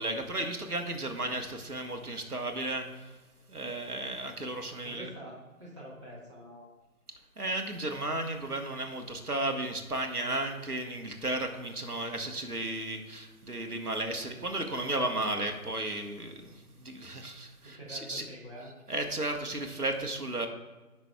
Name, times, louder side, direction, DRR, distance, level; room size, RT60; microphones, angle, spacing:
voice 1, 0.0-3.1 3.5-5.1 7.4-18.3 18.9-20.5, right 2 dB, 90° right, 4 dB, 1.3 m, -34 dB
voice 2, 4.8-6.7 17.6-18.7, equal, 20° right, -8 dB, 1.4 m, -46 dB
14.0 x 5.9 x 2.3 m, 1.2 s
figure-of-eight pair, 165°, 45 cm